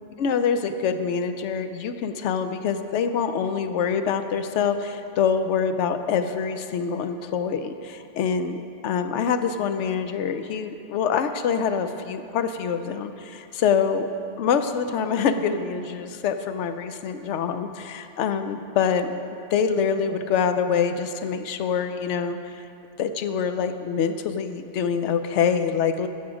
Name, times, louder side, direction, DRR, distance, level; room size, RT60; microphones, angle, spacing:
voice 1, 0.2-8.6 8.8-14.1 14.4-22.6 23.0-26.1, left 6 dB, 80° left, 9 dB, 0.9 m, -25 dB
14.5 x 5.7 x 5.0 m, 2.6 s
omnidirectional pair, 1.2 m